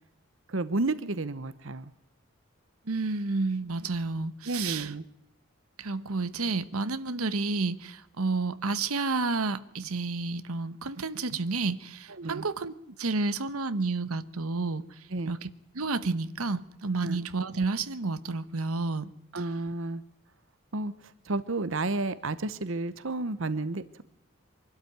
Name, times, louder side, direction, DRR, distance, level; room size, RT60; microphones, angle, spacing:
voice 1, 0.5-1.9 4.5-5.0 12.2-12.5 15.1-15.4 17.0-17.2 19.3-20.0 20.7-24.0, right 2 dB, 65° right, 0.9 m, -31 dB
voice 2, 2.9-4.9 5.8-15.5 15.7-19.1, right 3 dB, 90° right, 1.1 m, -30 dB
24.5 x 12.5 x 9.5 m
head